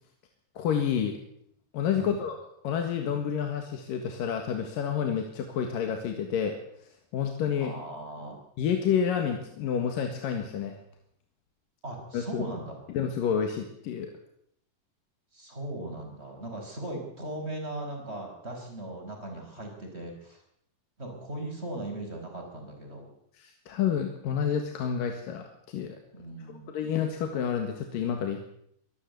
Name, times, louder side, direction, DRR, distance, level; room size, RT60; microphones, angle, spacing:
voice 1, 0.6-1.2 1.7-2.4 2.6-6.6 7.1-7.7 8.6-10.8 12.1-12.4 12.9-14.1 23.4-26.0 26.5-28.5, left 8 dB, 85° left, 4 dB, 3.4 m, -29 dB
voice 2, 7.6-8.4 11.8-12.8 15.3-20.4 21.0-23.1 26.1-26.7, right 1 dB, 15° right, 2 dB, 5.2 m, -38 dB
24.5 x 13.0 x 8.0 m, 0.71 s
omnidirectional pair, 3.8 m